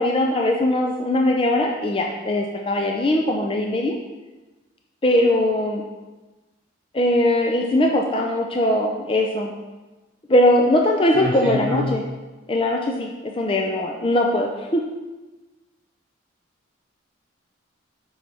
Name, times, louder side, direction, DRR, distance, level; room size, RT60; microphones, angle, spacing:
voice 1, 0.0-4.0 5.0-5.8 6.9-9.5 10.3-12.0 12.5-14.8, left 1 dB, 25° left, 1 dB, 0.4 m, -20 dB
voice 2, 11.1-11.9, left 2 dB, 10° right, -14 dB, 1.9 m, -25 dB
7.7 x 5.5 x 3.4 m, 1.2 s
head